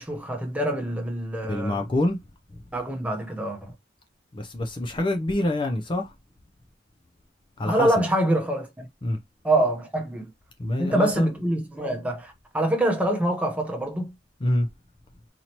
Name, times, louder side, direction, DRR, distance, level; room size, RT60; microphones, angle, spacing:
voice 1, 0.0-1.8 2.7-3.7 7.6-8.9 9.4-10.3 10.8-14.1, right 1 dB, 10° right, 0.8 m, -25 dB
voice 2, 1.5-2.2 4.3-6.1 7.6-7.9 9.0-9.2 10.6-11.3 14.4-14.7, left 1 dB, 30° left, 0.5 m, -26 dB
4.2 x 2.8 x 2.9 m
head